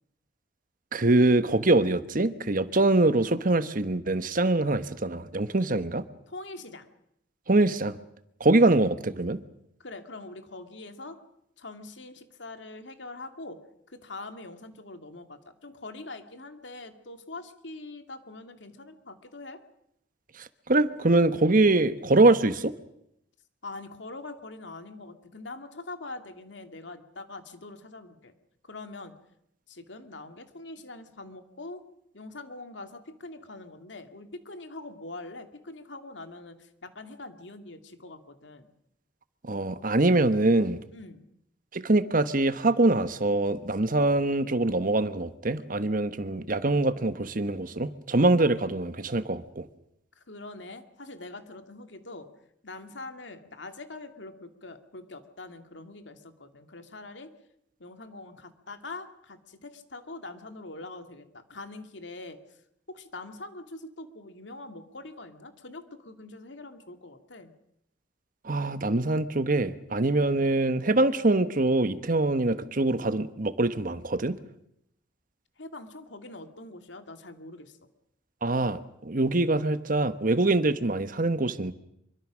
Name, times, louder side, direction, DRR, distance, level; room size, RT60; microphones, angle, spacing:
voice 1, 0.9-6.0 7.5-8.0 8.4-9.4 20.4-22.7 39.4-40.8 41.7-49.7 68.4-74.4 78.4-81.7, right 2 dB, 50° right, 1.2 m, -24 dB
voice 2, 6.3-6.9 9.8-11.2 11.6-13.6 13.9-19.6 23.6-28.3 28.7-29.1 29.7-31.8 32.1-38.7 40.9-41.3 50.2-52.3 52.6-57.3 57.8-62.4 62.9-67.5 75.6-77.8, left 2 dB, 90° left, 2.3 m, -43 dB
25.5 x 24.0 x 6.3 m
head